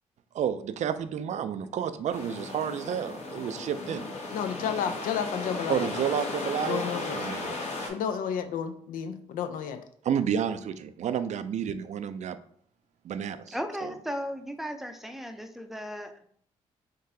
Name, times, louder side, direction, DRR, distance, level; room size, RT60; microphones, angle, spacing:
voice 1, 0.3-1.8 2.4-4.1 5.7-6.8 7.1-7.5 10.0-12.4 13.0-13.5, right 8 dB, 55° right, 11 dB, 0.4 m, -30 dB
sound 1, 2.1-7.9, left 2 dB, 55° left, 1.1 m, -35 dB
voice 2, 4.3-5.9 6.6-7.2 7.9-9.8, left 8 dB, 75° left, 9 dB, 0.4 m, -31 dB
voice 3, 13.5-16.3, equal, ahead, 6 dB, 0.5 m, -36 dB
3.8 x 2.7 x 2.7 m, 0.63 s
supercardioid pair, 50°, 14 cm